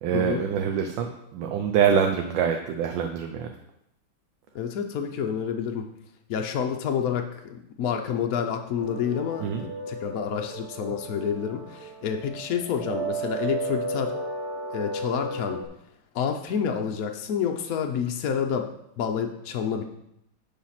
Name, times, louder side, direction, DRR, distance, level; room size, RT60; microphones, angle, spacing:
voice 1, 0.0-3.5 9.4-9.6, right 7 dB, 70° right, 5 dB, 1.3 m, -25 dB
voice 2, 4.5-5.8 6.3-14.1 14.7-15.6 16.1-18.7 19.0-19.8, left 7 dB, 65° left, 3 dB, 0.9 m, -28 dB
sound 1, 8.8-15.7, right 2 dB, 55° right, 1.5 m, -34 dB
7.2 x 5.0 x 5.7 m, 0.78 s
omnidirectional pair, 2.2 m